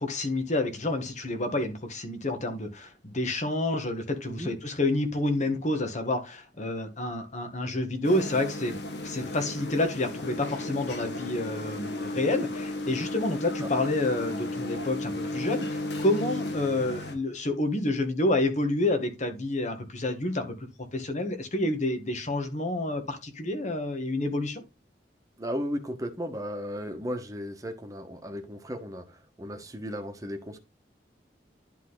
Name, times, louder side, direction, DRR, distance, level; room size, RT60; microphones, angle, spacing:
voice 1, 0.0-8.8 9.0-24.6, left 2 dB, 45° left, 1.6 m, -29 dB
sound 1, 8.0-17.1, left 2 dB, 75° left, 1.4 m, -34 dB
voice 2, 25.4-30.6, equal, 20° right, 1.4 m, -35 dB
11.0 x 3.8 x 3.9 m
head